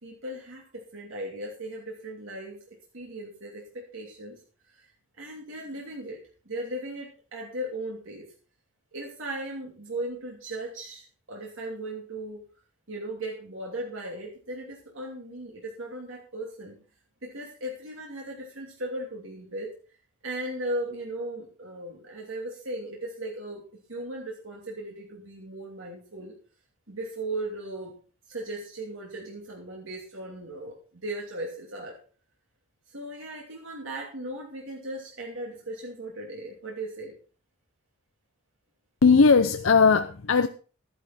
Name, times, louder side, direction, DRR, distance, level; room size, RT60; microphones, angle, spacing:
voice 1, 0.0-2.6 2.9-4.4 4.7-4.9 5.1-8.3 8.9-12.4 12.9-16.8 17.2-19.8 20.2-26.3 26.9-28.0 28.3-32.0 32.9-37.2, right 1 dB, 70° right, 2.9 m, -37 dB
voice 2, 39.0-40.5, left 5 dB, 75° left, 0.6 m, -18 dB
13.0 x 11.0 x 4.3 m
head